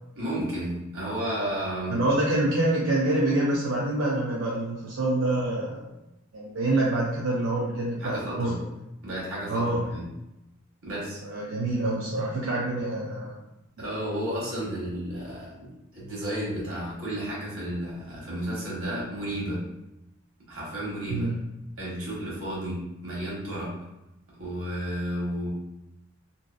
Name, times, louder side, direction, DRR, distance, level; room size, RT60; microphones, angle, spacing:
voice 1, 0.2-2.0 8.0-8.6 9.0-10.1 10.8-11.2 13.8-19.6 20.5-21.3 21.8-23.7 24.4-25.5, right 1 dB, 85° right, -6 dB, 1.2 m, -32 dB
voice 2, 1.9-5.9 6.3-8.5 9.5-9.8 11.2-13.3 21.1-21.3, right 2 dB, 65° right, -5 dB, 0.4 m, -26 dB
2.6 x 2.4 x 2.2 m, 0.91 s
head